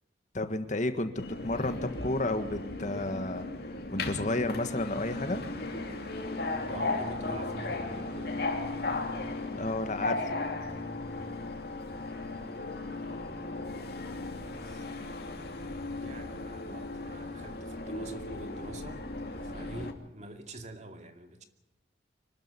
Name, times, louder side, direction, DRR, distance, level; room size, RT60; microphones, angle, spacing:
voice 1, 0.3-3.5 3.9-5.5 9.6-10.4, left 2 dB, 45° left, 9 dB, 1.6 m, -32 dB
Subway metro underground, 1.2-19.9, left 2 dB, 60° left, 2.8 m, -36 dB
voice 2, 6.7-8.8 12.6-15.3 16.0-21.4, right 1 dB, 40° right, 6 dB, 2.5 m, -47 dB
25.5 x 13.0 x 9.9 m, 0.90 s
head